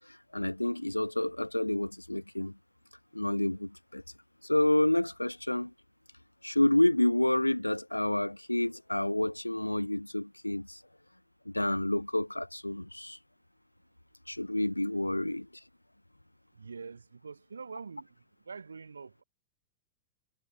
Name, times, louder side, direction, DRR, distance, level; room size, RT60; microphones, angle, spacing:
voice 1, 0.3-2.5 3.1-4.0 4.4-5.7 6.4-10.8 11.5-13.2 14.3-15.5, left 1 dB, 85° left, 0.3 m, -29 dB
voice 2, 16.5-18.1 18.4-19.2, right 5 dB, 75° right, 7.6 m, -44 dB
figure-of-eight pair, 90°, 0 cm